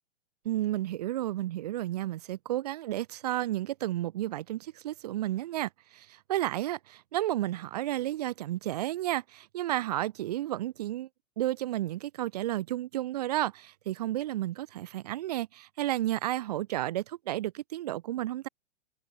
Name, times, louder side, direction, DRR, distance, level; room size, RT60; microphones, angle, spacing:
voice 1, 0.4-11.1 11.4-18.5, right 14 dB, 35° right, 0.5 m, -32 dB
hypercardioid pair, 160°, 36 cm